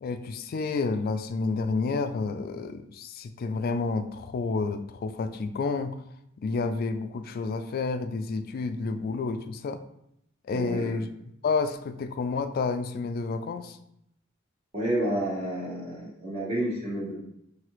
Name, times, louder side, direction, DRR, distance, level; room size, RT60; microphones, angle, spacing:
voice 1, 0.0-6.0 6.4-9.8 10.5-11.1 11.4-13.8, left 4 dB, 50° left, 9 dB, 0.3 m, -30 dB
voice 2, 10.5-11.0 14.7-17.1, right 1 dB, 35° right, -4 dB, 1.2 m, -30 dB
5.8 x 2.7 x 3.0 m, 0.76 s
head